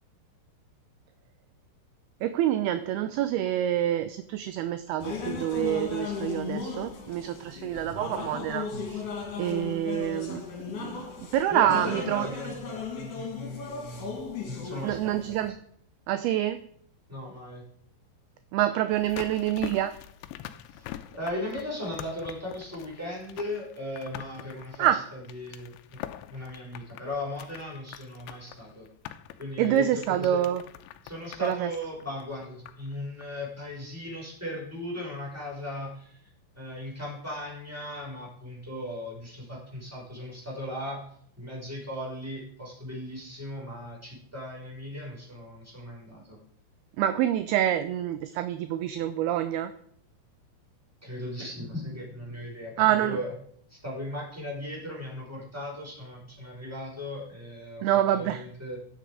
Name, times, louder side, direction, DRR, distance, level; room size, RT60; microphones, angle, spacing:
voice 1, 2.2-9.0 9.4-10.4 10.8-11.1 11.3-12.3 14.8-15.6 16.1-16.6 18.5-19.9 24.8-25.0 29.6-30.6 31.4-31.7 47.0-49.7 52.8-53.2 57.8-58.4, right 12 dB, 80° right, 11 dB, 2.4 m, -26 dB
sound 1, 5.0-15.5, left 5 dB, 50° left, 3.4 m, -36 dB
voice 2, 11.5-14.2 14.5-15.4 17.1-17.6 20.7-26.0 26.3-28.9 29.4-30.4 31.0-36.3 36.5-41.0 41.4-46.4 51.0-53.3 53.7-58.8, left 1 dB, 5° right, -3 dB, 4.7 m, -37 dB
sound 2, 18.9-32.9 33.2-33.3, left 13 dB, 90° left, 3.0 m, -44 dB
16.0 x 9.6 x 4.9 m, 0.64 s
omnidirectional pair, 5.0 m